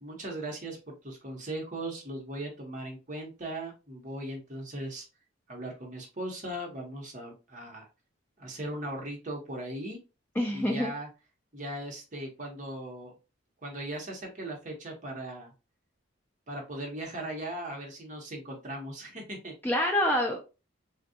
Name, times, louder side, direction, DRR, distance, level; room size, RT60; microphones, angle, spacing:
voice 1, 0.0-5.1 5.5-7.9 8.4-10.0 10.5-11.1 11.5-13.1 13.6-15.5 16.5-19.5, right 1 dB, 35° right, 0 dB, 0.9 m, -38 dB
voice 2, 10.4-10.9 19.6-20.4, left 1 dB, 10° left, 1 dB, 0.3 m, -26 dB
3.5 x 2.2 x 2.6 m, 0.30 s
head